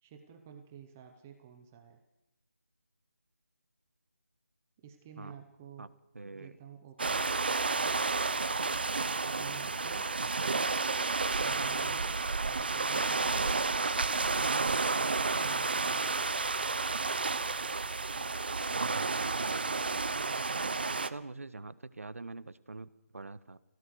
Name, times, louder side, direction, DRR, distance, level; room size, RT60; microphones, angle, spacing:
voice 1, 0.0-2.0 4.8-5.9 6.2-7.5 9.4-10.1 11.3-12.2 12.4-13.5 15.4-16.3, right 8 dB, 10° right, 5 dB, 0.8 m, -51 dB
voice 2, 6.1-6.6 18.7-19.7 20.9-23.6, right 3 dB, 65° right, 14 dB, 1.4 m, -44 dB
sound 1, 7.0-21.1, right 4 dB, 40° right, 0.9 m, -31 dB
25.5 x 17.0 x 6.4 m, 0.88 s
figure-of-eight pair, 175°, 8 cm